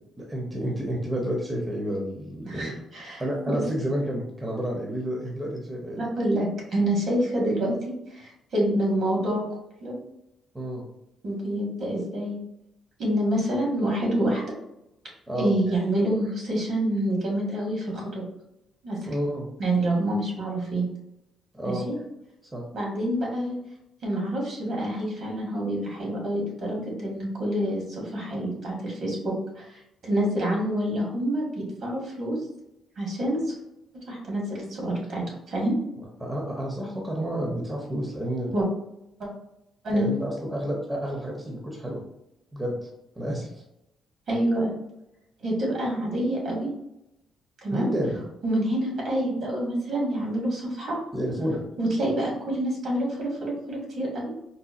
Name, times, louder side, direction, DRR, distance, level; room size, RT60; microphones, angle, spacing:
voice 1, 0.2-2.8 3.2-6.0 10.5-10.9 15.3-15.5 19.0-19.5 21.5-21.8 22.5-22.6 36.2-38.5 39.9-42.0 42.5-42.9 43.2-43.6 47.7-48.2 51.1-51.6, equal, 15° right, -1 dB, 0.7 m, -30 dB
voice 2, 2.4-3.6 6.0-7.8 8.1-9.4 9.8-10.0 11.2-12.4 13.0-14.4 15.4-18.3 18.8-19.1 19.6-20.9 21.8-21.9 22.7-23.5 24.0-32.4 33.0-33.5 34.1-35.7 38.5-38.7 39.2-39.3 39.8-40.1 44.3-44.7 45.4-46.7 47.6-47.9 48.4-51.0 51.8-54.3, right 1 dB, 60° right, -2 dB, 1.4 m, -27 dB
4.0 x 2.1 x 2.5 m, 0.85 s
cardioid pair, 90°, 0 cm